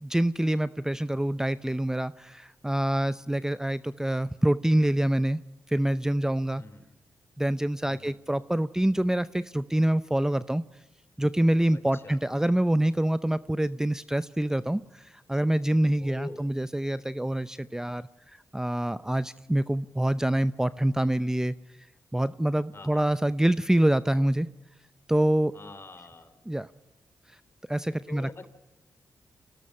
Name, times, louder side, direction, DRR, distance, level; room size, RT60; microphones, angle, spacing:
voice 1, 0.0-5.4 5.7-6.6 7.4-10.6 11.2-18.1 18.5-21.5 22.1-24.5 25.1-25.5 26.5-26.7 27.7-28.5, right 1 dB, 10° right, 15 dB, 0.6 m, -26 dB
voice 2, 6.5-6.9 7.8-8.1 11.7-12.2 16.0-16.5 22.7-23.1 25.5-26.4 28.1-28.5, left 3 dB, 40° left, 10 dB, 3.5 m, -45 dB
27.0 x 18.5 x 5.6 m, 0.97 s
supercardioid pair, 45°, 6 cm